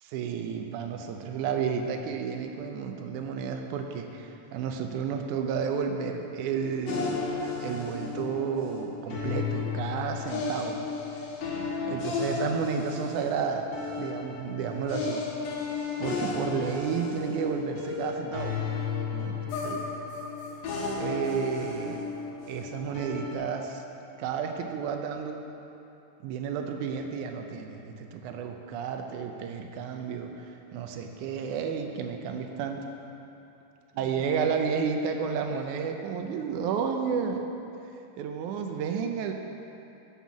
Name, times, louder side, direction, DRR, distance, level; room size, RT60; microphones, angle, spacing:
voice 1, 0.0-7.2 7.6-10.8 11.9-13.7 14.0-15.2 16.0-18.6 19.1-19.9 21.0-22.1 22.5-23.8 24.2-25.4 26.2-30.5 30.7-32.9 33.9-37.4 38.2-39.3, right 6 dB, 75° right, 4 dB, 1.9 m, -31 dB
sound 1, 6.9-23.3, left 4 dB, 70° left, 2.8 m, -33 dB
11.5 x 5.6 x 7.2 m, 2.9 s
omnidirectional pair, 4.1 m